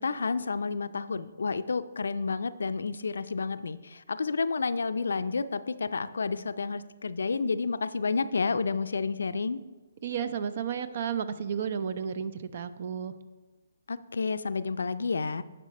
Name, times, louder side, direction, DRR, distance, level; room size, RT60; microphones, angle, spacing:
voice 1, 0.0-9.6 13.9-15.4, left 4 dB, 75° left, 13 dB, 0.4 m, -30 dB
voice 2, 10.0-13.1, right 7 dB, 50° right, 13 dB, 0.6 m, -32 dB
10.5 x 5.5 x 4.2 m, 1.2 s
hypercardioid pair, 145°, 0 cm